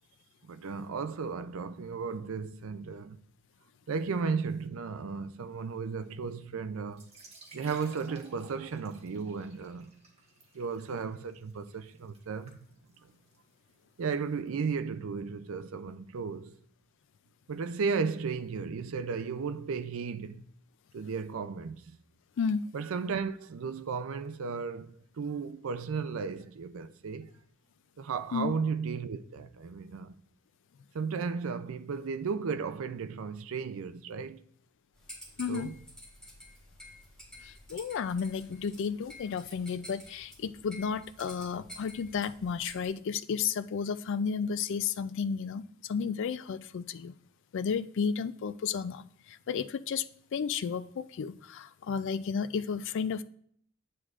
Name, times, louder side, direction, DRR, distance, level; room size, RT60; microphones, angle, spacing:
voice 1, 0.4-3.2 3.9-7.1 7.5-9.9 10.5-12.6 14.0-16.6 17.5-20.4 20.9-22.0 22.7-27.3 28.0-30.1 30.9-34.4 35.5-35.8, right 5 dB, 70° right, 0.4 m, -34 dB
sound 1, 6.9-14.5, right 3 dB, 30° right, 1.4 m, -57 dB
sound 2, 34.9-42.9, left 1 dB, 5° left, 3.1 m, -50 dB
voice 2, 35.4-35.7 37.4-47.1 47.5-50.0 50.3-53.2, left 6 dB, 60° left, 0.3 m, -32 dB
9.9 x 7.5 x 2.4 m
head